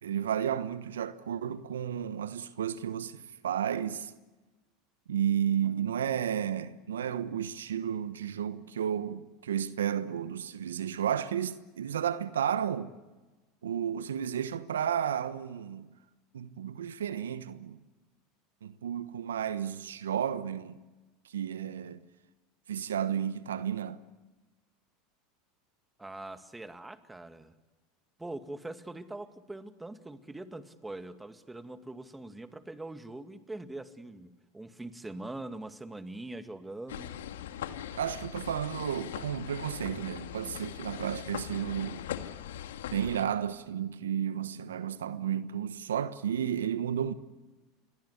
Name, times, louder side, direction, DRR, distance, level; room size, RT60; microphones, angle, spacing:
voice 1, 0.0-4.1 5.1-12.9 13.6-15.9 16.3-17.8 18.6-20.8 21.3-22.0 22.7-24.0 37.9-42.0 42.9-47.1, right 9 dB, 85° right, 1.1 m, -32 dB
voice 2, 26.0-27.5 28.2-37.2, right 2 dB, 10° right, 2.1 m, -43 dB
sound 1, 36.9-43.3, left 10 dB, 80° left, 2.0 m, -40 dB
28.5 x 22.5 x 8.3 m
hypercardioid pair, 90°, 0 cm